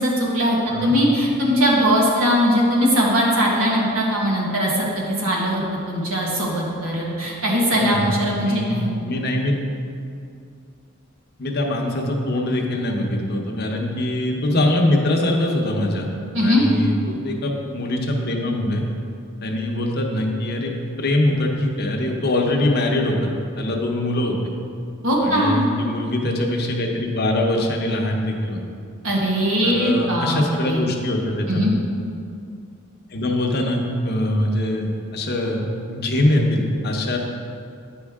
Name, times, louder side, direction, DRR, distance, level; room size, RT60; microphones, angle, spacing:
voice 1, 0.0-8.9 16.3-16.6 25.0-25.7 29.0-30.8 31.5-31.7, equal, 80° right, -3 dB, 1.5 m, -20 dB
voice 2, 7.7-9.6 11.4-16.1 16.4-18.8 19.4-23.3 23.6-24.4 25.2-28.6 29.6-31.8 33.1-37.2, left 1 dB, 50° left, 1 dB, 0.8 m, -23 dB
9.3 x 5.4 x 3.6 m, 2.4 s
head